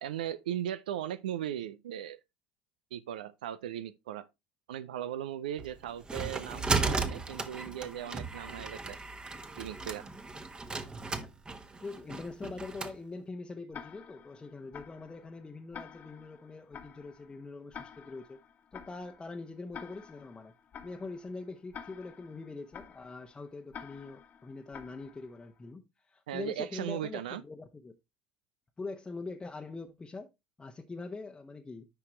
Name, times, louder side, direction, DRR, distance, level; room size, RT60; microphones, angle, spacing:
voice 1, 0.0-2.2 2.9-4.3 4.7-9.0 9.6-10.1 26.3-27.4, right 11 dB, 70° right, 0.5 m, -38 dB
sound 1, 5.6-13.0, right 3 dB, 20° right, 1.2 m, -35 dB
voice 2, 11.8-18.4 18.7-20.5 20.8-27.9 28.8-30.3 30.6-31.9, left 3 dB, 20° left, 1.0 m, -43 dB
Tick-tock, 13.7-25.6, left 7 dB, 40° left, 1.3 m, -50 dB
9.8 x 6.0 x 3.1 m
figure-of-eight pair, 65°, 5 cm